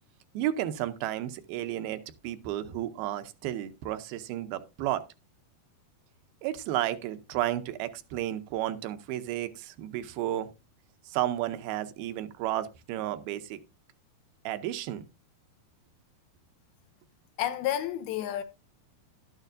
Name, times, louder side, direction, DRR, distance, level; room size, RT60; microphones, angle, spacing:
voice 1, 0.3-5.0 6.4-10.5 11.1-13.6 14.5-15.0, right 13 dB, 80° right, 2.5 m, -32 dB
voice 2, 17.4-18.4, left 12 dB, 80° left, 2.5 m, -30 dB
12.0 x 9.1 x 2.6 m
omnidirectional pair, 4.6 m